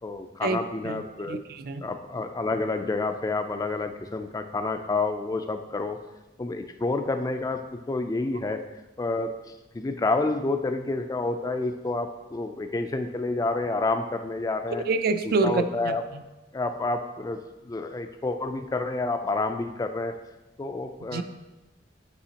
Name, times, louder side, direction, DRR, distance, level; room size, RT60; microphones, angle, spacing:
voice 1, 0.0-1.4 1.8-6.0 6.4-8.6 9.0-14.8 15.2-16.0 16.5-20.2 20.6-21.2, left 3 dB, 20° left, 7 dB, 0.3 m, -29 dB
voice 2, 1.3-1.9 14.9-15.9 21.1-21.2, right 3 dB, 55° right, 10 dB, 0.4 m, -26 dB
8.6 x 4.9 x 2.8 m, 1.1 s
head